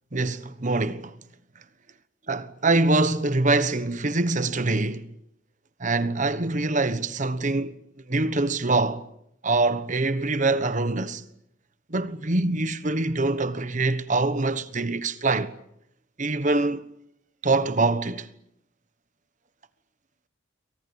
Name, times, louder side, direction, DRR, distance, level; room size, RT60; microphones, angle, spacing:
voice 1, 0.1-1.1 2.3-5.1 5.8-7.8 8.1-9.1 9.4-11.2 11.9-15.5 16.2-16.9 17.4-18.3, right 2 dB, 40° right, 1.2 m, -24 dB
28.5 x 24.0 x 7.1 m
head